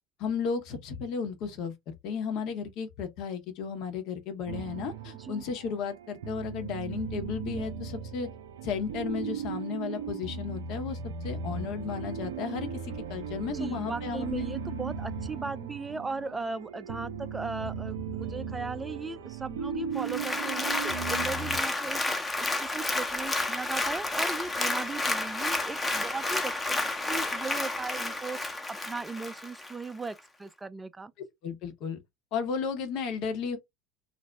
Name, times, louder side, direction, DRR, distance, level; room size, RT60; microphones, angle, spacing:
voice 1, 0.2-1.7 2.0-8.3 8.6-11.0 11.2-14.4 31.4-32.0 32.3-33.6, left 6 dB, 60° left, 0.8 m, -34 dB
sound 1, 4.5-21.6, right 6 dB, 85° right, 0.4 m, -37 dB
voice 2, 13.5-26.8 27.1-31.1, right 4 dB, 15° right, 0.4 m, -37 dB
Applause, 20.0-29.7 30.2-30.3, left 2 dB, 15° left, 0.7 m, -31 dB
2.6 x 2.0 x 3.2 m
hypercardioid pair, 80°, 0 cm